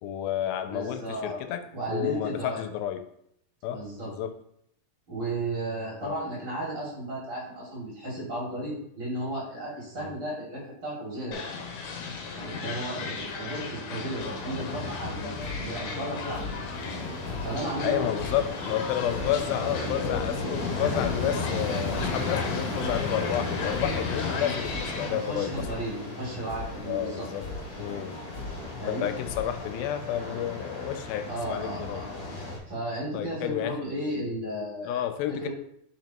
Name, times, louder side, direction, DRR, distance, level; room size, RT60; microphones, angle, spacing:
voice 1, 0.0-3.1 3.6-4.4 6.0-6.1 10.0-10.1 12.6-12.9 17.8-25.8 26.9-27.5 27.8-28.2 28.9-32.1 32.4-32.5 33.1-33.8 34.8-35.5, left 11 dB, 90° left, 9 dB, 2.4 m, -31 dB
voice 2, 0.6-1.4 1.7-2.7 3.7-4.1 5.1-11.4 12.3-16.6 17.4-18.5 25.1-27.3 28.8-29.1 31.3-32.1 32.7-35.0 35.4-35.5, right 1 dB, 40° right, -5 dB, 3.2 m, -34 dB
sound 1, 11.3-25.1, left 5 dB, 75° left, 2.4 m, -36 dB
sound 2, 14.2-32.6, left 2 dB, 50° left, 2.5 m, -35 dB
sound 3, 15.4-30.9, left 3 dB, 30° left, 2.5 m, -42 dB
8.8 x 5.6 x 3.0 m, 0.72 s
omnidirectional pair, 4.1 m